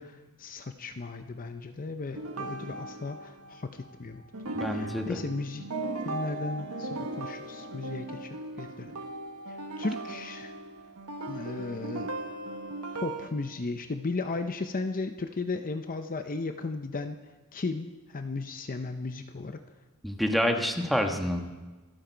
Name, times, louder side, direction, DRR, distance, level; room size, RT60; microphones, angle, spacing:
voice 1, 0.0-4.2 4.7-5.7 6.0-9.0 9.5-10.5 11.3-12.1 13.0-17.2 17.5-19.6, left 3 dB, 40° left, 7 dB, 0.6 m, -35 dB
sound 1, 2.1-4.0 4.3-13.3, right 2 dB, 85° right, 1.5 m, -38 dB
voice 2, 4.5-5.2 20.0-21.4, equal, ahead, 3 dB, 1.3 m, -27 dB
26.5 x 8.9 x 4.6 m, 1.2 s
head